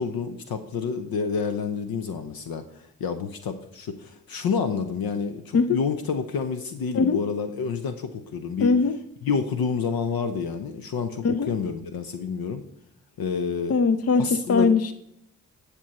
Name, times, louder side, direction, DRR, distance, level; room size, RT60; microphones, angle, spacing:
voice 1, 0.0-8.7 9.2-12.6 13.2-13.8 14.2-14.7, left 5 dB, 65° left, 8 dB, 0.8 m, -29 dB
voice 2, 8.6-8.9 11.2-11.5 13.7-14.9, left 4 dB, 40° left, 12 dB, 0.7 m, -21 dB
12.0 x 6.9 x 4.2 m, 0.76 s
hypercardioid pair, 40°, 39 cm